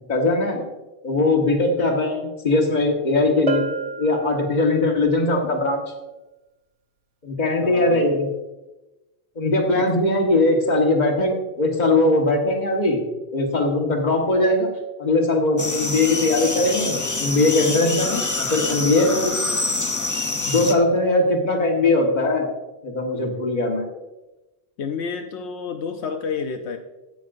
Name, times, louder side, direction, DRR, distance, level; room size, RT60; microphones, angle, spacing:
voice 1, 0.1-0.7 1.0-3.7 4.0-5.8 7.2-8.3 9.3-13.0 13.3-14.7 15.0-19.3 20.5-22.5 22.8-23.9, left 2 dB, 45° left, 0 dB, 1.6 m, -20 dB
Bell, 3.5-5.1, right 7 dB, 45° right, 0.5 m, -30 dB
voice 2, 7.6-8.2 9.7-9.9 24.8-26.8, left 5 dB, 80° left, 5 dB, 1.0 m, -30 dB
sound 1, 15.6-20.7, left 3 dB, 25° left, 0.5 m, -26 dB
16.5 x 5.8 x 2.6 m, 1.0 s
omnidirectional pair, 1.1 m